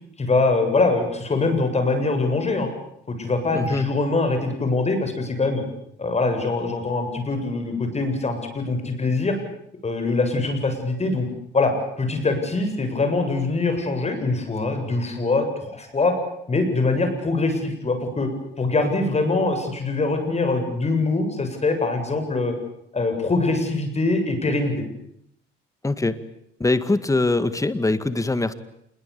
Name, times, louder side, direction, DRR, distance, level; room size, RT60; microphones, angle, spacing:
voice 1, 0.2-2.7 3.1-5.6 6.0-9.4 9.8-11.3 11.5-16.2 16.5-18.3 18.6-22.5 22.9-24.7, left 3 dB, 35° left, 6 dB, 7.7 m, -23 dB
voice 2, 3.5-3.9 25.8-26.2 26.6-28.5, left 2 dB, 15° left, 13 dB, 2.0 m, -22 dB
27.0 x 22.0 x 8.6 m, 0.73 s
cardioid pair, 90°, 20 cm